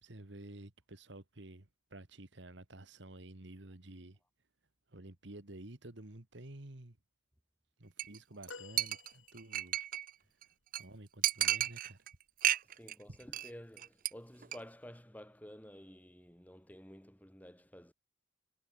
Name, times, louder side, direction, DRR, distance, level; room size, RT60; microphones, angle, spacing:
voice 1, 0.0-4.2 4.9-7.0 7.8-9.8 10.8-12.1 13.1-13.2, right 1 dB, 65° right, 1.8 m, -51 dB
Chink clink, 8.0-8.2 8.4-8.5 8.8-10.1 10.4-10.5 10.7-10.8 11.2-12.1 12.4-12.9 13.2-13.5 13.8-14.1 14.4-14.6, right 12 dB, 45° right, 0.7 m, -33 dB
sound 1, 8.5-9.9 12.3-12.5 13.8-13.9, left 4 dB, 85° left, 6.6 m, -52 dB
voice 2, 12.7-17.9, equal, 10° left, 3.3 m, -52 dB
head